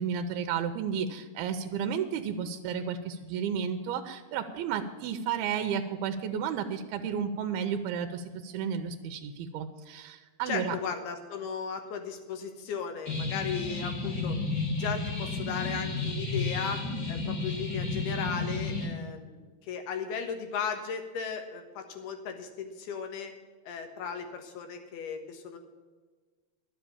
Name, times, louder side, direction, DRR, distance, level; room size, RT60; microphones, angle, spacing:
voice 1, 0.0-10.8, right 7 dB, 85° right, 6 dB, 2.6 m, -32 dB
voice 2, 10.5-14.4 14.7-16.8 17.1-23.3 23.6-25.6, left 6 dB, 85° left, 5 dB, 3.4 m, -36 dB
sound 1, 13.1-18.9, left 3 dB, 30° left, 3.4 m, -32 dB
11.5 x 7.6 x 8.4 m, 1.4 s
omnidirectional pair, 4.3 m